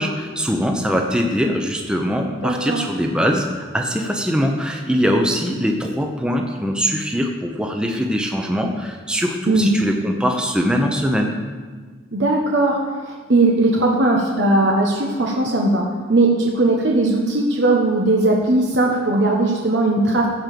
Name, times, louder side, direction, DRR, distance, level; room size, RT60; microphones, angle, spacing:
voice 1, 0.0-11.4, equal, 5° right, 2 dB, 0.8 m, -22 dB
voice 2, 2.4-2.8 9.5-9.7 12.1-12.8 13.1-20.3, right 2 dB, 75° right, -1 dB, 1.3 m, -18 dB
15.0 x 5.3 x 6.7 m, 1.5 s
head